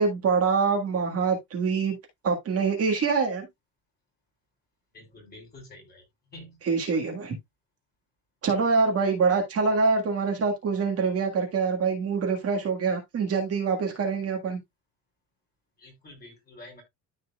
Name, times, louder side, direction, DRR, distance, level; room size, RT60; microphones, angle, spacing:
voice 1, 0.0-2.0 2.2-3.5 6.6-7.4 8.4-14.6, right 5 dB, 40° right, 1.8 m, -25 dB
voice 2, 4.9-6.6 15.8-16.8, left 1 dB, 25° left, 3.9 m, -48 dB
13.5 x 4.5 x 2.4 m
cardioid pair, 175°, 37 cm